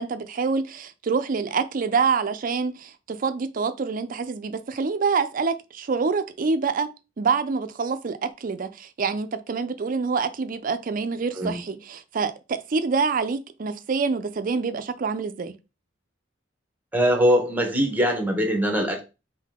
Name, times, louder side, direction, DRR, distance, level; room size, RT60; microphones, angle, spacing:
voice 1, 0.0-6.9 7.2-15.5, right 5 dB, 50° right, 0.4 m, -26 dB
voice 2, 16.9-19.0, equal, 10° right, 0.9 m, -22 dB
3.7 x 2.7 x 3.5 m
head